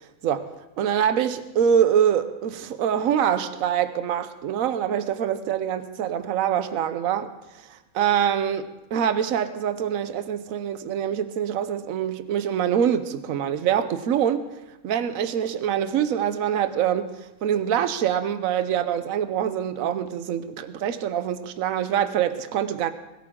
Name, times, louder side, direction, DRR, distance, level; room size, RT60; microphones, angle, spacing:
voice 1, 0.8-7.3 7.9-14.5 14.8-17.1 17.4-22.9, right 9 dB, 75° right, 11 dB, 1.2 m, -24 dB
21.5 x 13.0 x 3.7 m, 1.0 s
omnidirectional pair, 1.4 m